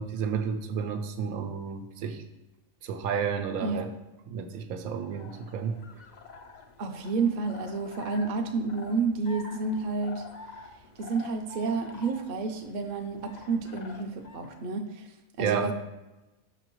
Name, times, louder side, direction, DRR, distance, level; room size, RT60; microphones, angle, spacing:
voice 1, 0.0-2.2 2.8-3.9 4.3-5.8 15.4-15.7, right 6 dB, 90° right, 6 dB, 1.1 m, -31 dB
sound 1, 4.9-14.6, left 4 dB, 75° left, 0.4 m, -48 dB
voice 2, 6.8-10.2 11.0-15.1 15.4-15.7, right 4 dB, 55° right, 5 dB, 0.5 m, -30 dB
6.1 x 5.7 x 3.0 m, 1.0 s
omnidirectional pair, 1.4 m